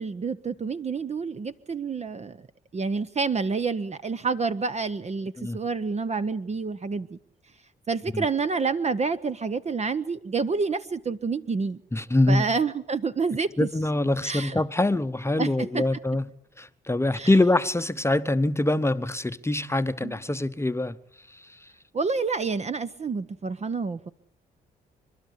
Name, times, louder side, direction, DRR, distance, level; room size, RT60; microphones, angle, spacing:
voice 1, 0.0-2.4 2.7-7.2 7.9-11.8 12.3-13.5 14.2-14.6 15.4-15.8 17.1-17.3 20.0-20.1 21.9-24.1, right 4 dB, 35° right, 0.8 m, -28 dB
voice 2, 11.9-12.4 13.6-16.3 16.6-21.0 21.3-21.7, left 2 dB, 15° left, 0.8 m, -24 dB
28.0 x 12.0 x 8.4 m
supercardioid pair, 55°, 19 cm